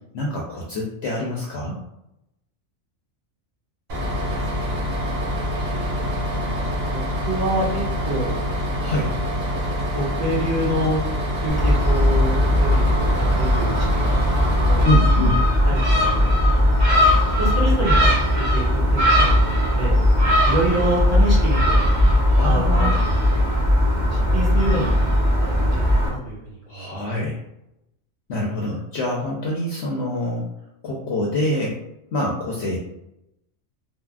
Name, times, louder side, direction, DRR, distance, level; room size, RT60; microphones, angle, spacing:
voice 1, 0.1-1.8 8.8-9.1 14.8-15.4 22.4-22.9 26.7-27.4 28.3-30.5 30.8-31.8 32.1-32.8, left 1 dB, 65° left, -3 dB, 0.8 m, -25 dB
Bus, 3.9-14.8, equal, 70° right, 1.3 m, -26 dB
voice 2, 4.0-4.9 5.5-8.4 9.9-11.0 11.4-12.9 13.4-14.9 15.6-16.3 16.9-20.0 20.4-21.9 22.4-23.3 24.1-25.1 25.4-26.9, right 1 dB, 15° right, -9 dB, 1.1 m, -27 dB
Gull seagull, 11.5-26.1, left 1 dB, 40° right, 0.8 m, -18 dB
3.5 x 2.1 x 2.3 m, 0.85 s
omnidirectional pair, 1.4 m